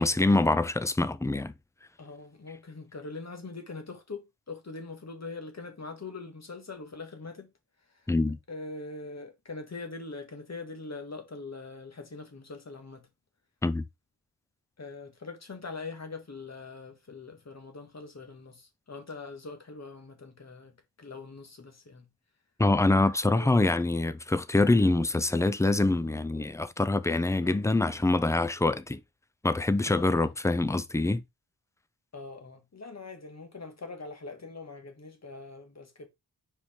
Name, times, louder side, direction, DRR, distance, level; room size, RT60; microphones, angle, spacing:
voice 1, 0.0-1.5 8.1-8.4 13.6-13.8 22.6-29.0 29.4-31.2, left 2 dB, 10° left, 0.4 m, -25 dB
voice 2, 2.0-7.5 7.9-8.1 8.5-13.1 14.8-22.1 23.3-23.7 27.4-27.6 29.9-30.3 32.1-36.1, left 3 dB, 40° left, 1.6 m, -42 dB
4.9 x 4.5 x 4.4 m
wide cardioid pair, 125°, 41 cm